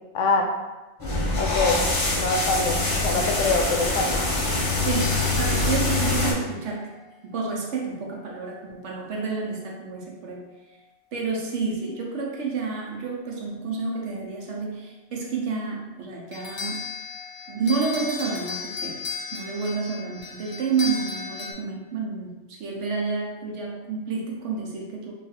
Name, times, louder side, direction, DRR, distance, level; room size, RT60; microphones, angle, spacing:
voice 1, 0.1-0.5 1.4-1.8 2.1-4.2, left 3 dB, 85° left, 3 dB, 0.9 m, -24 dB
sound 1, 1.0-6.3, left 2 dB, 20° left, 0.8 m, -24 dB
voice 2, 4.7-6.9 7.2-10.4 11.1-16.9 17.5-25.1, right 4 dB, 75° right, -1 dB, 1.0 m, -30 dB
sound 2, 4.8-7.1 16.3-21.5, left 4 dB, 60° left, 0.8 m, -36 dB
3.2 x 2.4 x 4.1 m, 1.1 s
omnidirectional pair, 1.2 m